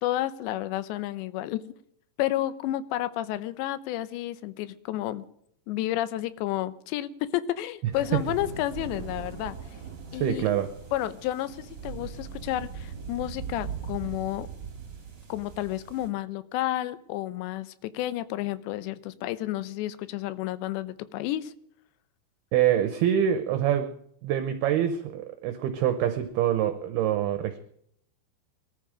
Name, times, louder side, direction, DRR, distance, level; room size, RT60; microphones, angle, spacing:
voice 1, 0.0-1.6 2.2-5.2 5.7-9.6 10.1-10.5 10.9-14.5 15.3-21.5, left 14 dB, 80° left, 15 dB, 2.9 m, -31 dB
sound 1, 7.9-16.1, right 6 dB, 30° right, 2.7 m, -40 dB
voice 2, 10.1-10.7 22.5-23.9 24.2-27.6, right 10 dB, 75° right, 9 dB, 2.6 m, -25 dB
21.0 x 13.5 x 5.1 m, 0.70 s
omnidirectional pair, 5.3 m